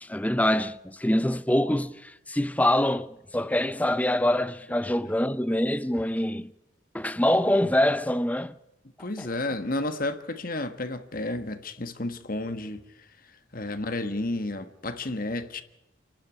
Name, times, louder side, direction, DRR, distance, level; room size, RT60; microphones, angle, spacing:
voice 1, 0.0-6.5 6.9-8.6 9.0-9.3, left 1 dB, 5° left, 0.7 m, -25 dB
voice 2, 9.0-15.6, left 2 dB, 45° left, 1.5 m, -32 dB
29.0 x 12.0 x 9.6 m
head